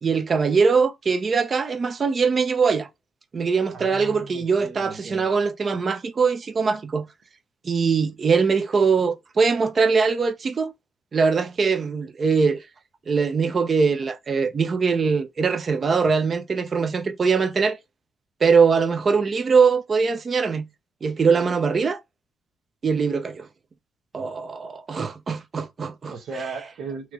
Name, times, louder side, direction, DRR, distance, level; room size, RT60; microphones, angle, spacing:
voice 1, 0.0-2.9 3.3-7.1 7.6-10.7 11.1-12.6 13.1-17.8 18.4-20.7 21.0-22.0 22.8-23.5 24.1-26.1, right 5 dB, 40° right, 0.7 m, -22 dB
voice 2, 3.7-5.3 26.1-27.1, right 4 dB, 65° right, 1.1 m, -36 dB
3.2 x 3.0 x 3.6 m
cardioid pair, 90°, 0 cm